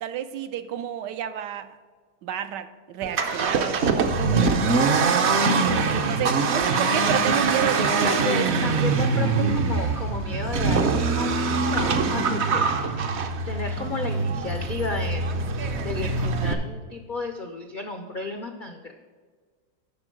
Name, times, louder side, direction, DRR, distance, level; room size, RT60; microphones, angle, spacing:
voice 1, 0.0-1.7 2.2-5.2 5.9-8.4 8.8-9.0, right 10 dB, 80° right, 10 dB, 1.2 m, -31 dB
Accelerating revving vroom, 3.0-16.5, right 4 dB, 60° right, 0.7 m, -23 dB
voice 2, 8.0-12.6 13.5-15.4 15.8-18.9, left 3 dB, 75° left, 4 dB, 0.4 m, -33 dB
11.0 x 4.5 x 6.3 m, 1.5 s
omnidirectional pair, 1.8 m